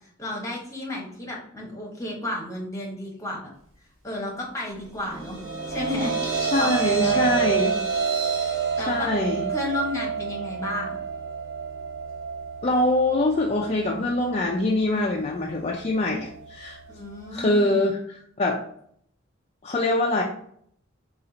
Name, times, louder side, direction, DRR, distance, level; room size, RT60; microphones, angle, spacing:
voice 1, 0.2-3.5 4.0-5.4 5.7-7.7 8.8-9.1 9.5-11.0 16.9-17.8, left 1 dB, 15° left, -2 dB, 1.0 m, -32 dB
sound 1, 5.0-17.3, right 6 dB, 80° right, 1.2 m, -29 dB
voice 2, 6.4-7.8 8.9-9.4 12.6-16.8 17.3-18.6 19.6-20.2, left 2 dB, 30° left, -1 dB, 0.4 m, -24 dB
4.3 x 2.4 x 3.9 m, 0.66 s
head